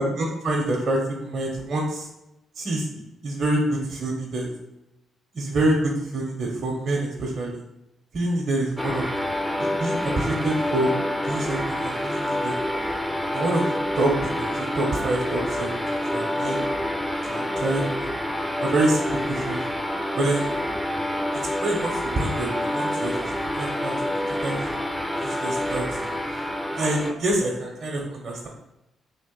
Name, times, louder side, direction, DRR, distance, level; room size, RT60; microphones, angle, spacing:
voice 1, 0.0-2.1 2.6-2.9 3.2-4.5 5.3-7.6 8.1-9.1 9.6-10.9 11.3-12.5 13.3-16.6 17.2-18.1 18.6-19.6 20.2-20.5 21.6-23.1 23.4-23.9 24.4-24.7 25.2-26.1 26.8-28.5, right 1 dB, 55° right, -2 dB, 0.7 m, -26 dB
sound 1, 8.8-27.1, left 1 dB, 5° left, 0.5 m, -27 dB
3.4 x 2.5 x 3.6 m, 0.89 s
hypercardioid pair, 50°, 0 cm